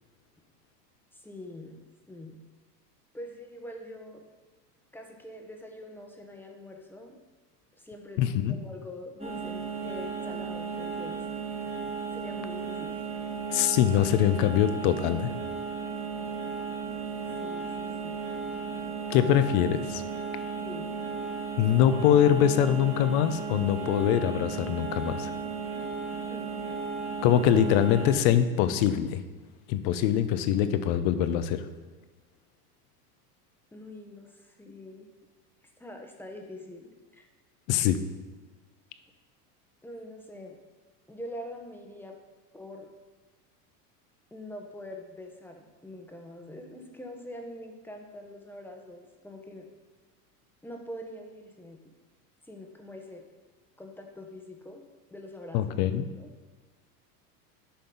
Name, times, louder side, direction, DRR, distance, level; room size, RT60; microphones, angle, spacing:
voice 1, 1.1-2.4 3.1-4.2 4.9-7.2 7.8-8.2 8.5-11.2 12.1-13.1 17.4-18.3 20.6-21.0 26.1-26.5 33.7-35.1 35.8-37.3 39.8-40.6 41.1-42.2 42.5-42.9 44.3-49.7 50.6-51.8 52.4-53.2 53.8-54.8 55.1-55.8 56.1-56.3, left 1 dB, 5° left, 2 dB, 1.2 m, -44 dB
voice 2, 8.2-8.5 13.5-15.3 19.1-20.0 21.6-25.3 27.2-29.2 29.7-31.7 37.7-38.0 55.5-56.0, left 10 dB, 55° left, 11 dB, 0.9 m, -23 dB
sound 1, 9.2-28.1, right 5 dB, 10° right, 1.6 m, -35 dB
11.0 x 5.2 x 3.9 m, 1.4 s
hypercardioid pair, 105°, 48 cm